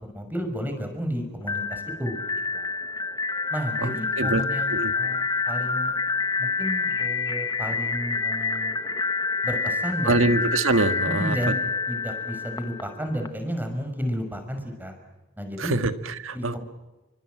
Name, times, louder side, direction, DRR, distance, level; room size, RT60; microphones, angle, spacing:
voice 1, 0.1-2.2 2.5-2.7 3.5-5.9 6.4-8.8 9.4-10.3 11.1-11.6 11.9-14.9 15.4-15.7 16.3-16.7, equal, 10° right, 5 dB, 5.6 m, -32 dB
sound 1, 1.4-13.3, left 4 dB, 20° left, 1.3 m, -28 dB
voice 2, 3.8-4.5 4.7-4.9 10.0-11.4 15.6-16.6, right 2 dB, 75° right, 10 dB, 1.8 m, -24 dB
30.0 x 24.5 x 7.9 m, 1.1 s
head